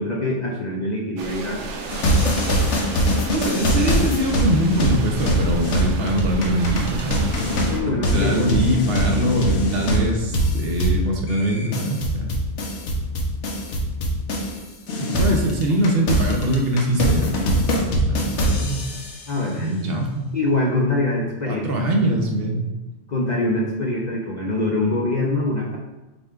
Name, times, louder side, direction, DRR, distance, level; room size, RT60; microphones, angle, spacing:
voice 1, 0.0-1.8 7.7-8.5 15.3-15.4 19.3-19.7 20.3-21.7 22.0-22.1 23.1-25.8, left 2 dB, 50° left, -2 dB, 0.5 m, -24 dB
sound 1, 1.2-7.8, right 3 dB, 85° right, 0.9 m, -32 dB
sound 2, 1.9-14.6 14.9-19.3, equal, 75° left, 1.0 m, -22 dB
voice 2, 3.3-12.4 15.0-18.9 19.5-20.3 21.4-22.7, right 1 dB, 60° right, 1 dB, 0.8 m, -23 dB
6.1 x 2.2 x 3.6 m, 1.1 s
omnidirectional pair, 1.2 m